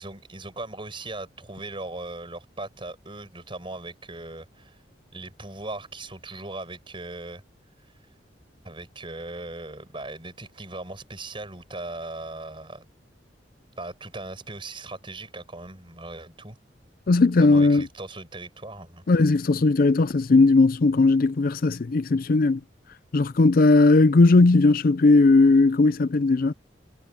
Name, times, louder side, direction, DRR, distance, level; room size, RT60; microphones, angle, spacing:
voice 1, 0.0-4.8 5.1-7.4 7.8-7.9 8.6-12.8 13.8-16.6 17.4-19.0, right 2 dB, 30° right, 6.2 m, -38 dB
voice 2, 17.1-17.9 19.1-22.6 23.1-26.5, left 3 dB, 50° left, 0.5 m, -18 dB
head